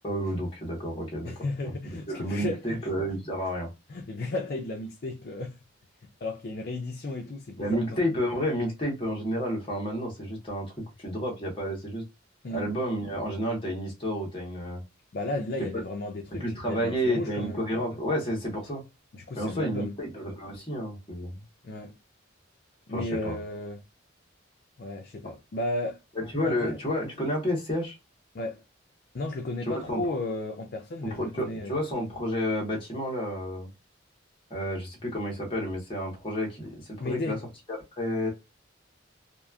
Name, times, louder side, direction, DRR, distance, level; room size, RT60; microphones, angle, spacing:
voice 1, 0.0-1.3 1.6-1.7 2.1-3.7 7.6-10.7 11.0-12.0 12.5-14.8 16.3-18.8 19.4-21.4 22.9-23.4 26.2-28.0 29.7-30.1 31.0-33.7 34.5-37.4 38.0-38.3, equal, 25° left, 1.1 m, -30 dB
voice 2, 1.3-2.8 3.9-5.6 6.2-8.1 12.4-12.6 15.1-17.6 19.1-20.0 21.6-21.9 22.9-23.8 24.8-26.0 26.4-26.8 28.3-28.6 29.1-31.8 37.0-37.4, left 2 dB, 50° left, 0.4 m, -34 dB
2.9 x 2.4 x 2.3 m
head